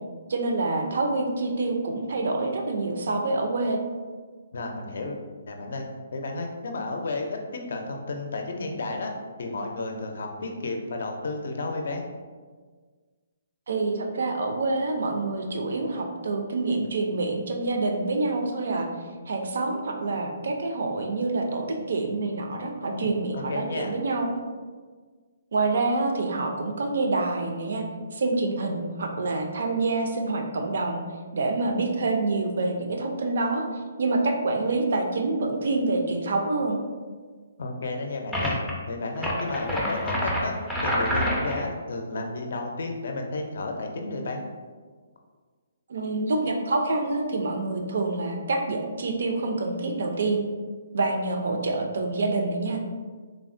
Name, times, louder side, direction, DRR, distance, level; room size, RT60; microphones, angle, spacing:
voice 1, 0.3-3.8 13.7-18.9 19.3-24.3 25.5-27.8 28.1-31.0 31.3-33.6 34.0-36.8 45.9-50.4 50.9-52.8, right 3 dB, 65° right, 3 dB, 0.4 m, -27 dB
voice 2, 4.5-9.1 9.4-12.0 22.9-23.9 37.6-38.6 38.9-40.5 40.8-44.4, left 2 dB, 65° left, 2 dB, 0.4 m, -32 dB
sound 1, 38.3-38.7 39.2-41.7, equal, ahead, 0.4 m, -27 dB
3.3 x 2.0 x 2.5 m, 1.5 s
hypercardioid pair, 165°, 0 cm